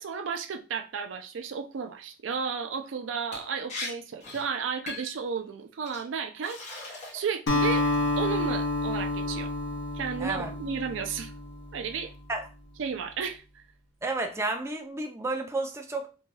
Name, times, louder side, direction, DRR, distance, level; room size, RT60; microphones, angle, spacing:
voice 1, 0.0-6.6 7.1-7.9 8.2-9.5 9.9-11.3 11.7-12.1 12.8-13.6, right 6 dB, 90° right, 0.4 m, -33 dB
Liquid, 3.3-3.4 3.7-3.9 4.2-4.5 4.9-5.2 5.9-6.0 6.4-7.3 7.7-8.2, left 2 dB, 40° left, 0.9 m, -39 dB
Acoustic guitar, 7.5-11.9, left 2 dB, 65° left, 0.7 m, -29 dB
voice 2, 10.2-10.5 12.3-12.5 14.0-16.1, right 2 dB, 15° right, 0.4 m, -31 dB
2.6 x 2.2 x 3.2 m
head